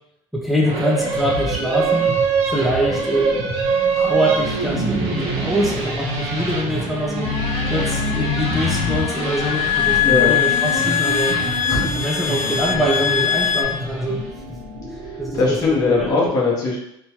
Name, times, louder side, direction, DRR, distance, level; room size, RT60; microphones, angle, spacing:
voice 1, 0.3-2.2 2.5-3.4 4.0-7.3 7.7-11.4 11.9-14.2 15.2-16.1, equal, ahead, -3 dB, 0.3 m, -24 dB
sound 1, 0.6-14.3, right 4 dB, 75° right, 0.6 m, -25 dB
sound 2, 1.0-16.1, equal, 30° right, 0.7 m, -34 dB
sound 3, 7.2-13.6, left 9 dB, 85° left, 0.4 m, -22 dB
voice 2, 10.0-10.4 11.6-12.0 15.3-16.8, left 3 dB, 35° left, -4 dB, 0.8 m, -20 dB
2.9 x 2.2 x 2.8 m, 0.78 s
cardioid pair, 180°, 10 cm